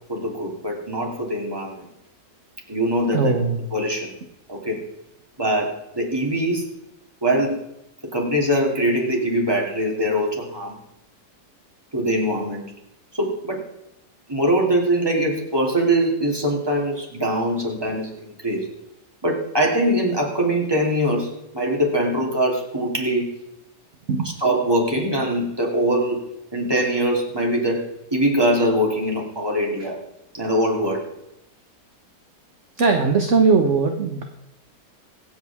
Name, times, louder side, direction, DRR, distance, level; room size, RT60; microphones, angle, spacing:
voice 1, 0.1-1.8 2.7-4.1 4.5-4.8 5.4-6.7 7.2-7.6 8.1-10.8 11.9-12.6 13.2-13.6 14.3-18.7 19.2-23.3 24.4-26.2 26.5-30.0 30.3-31.1, right 1 dB, 15° right, -1 dB, 2.8 m, -22 dB
voice 2, 3.1-3.6 24.1-24.3 32.8-34.2, right 4 dB, 45° right, 4 dB, 1.3 m, -19 dB
25.0 x 8.3 x 3.6 m, 0.87 s
omnidirectional pair, 1.9 m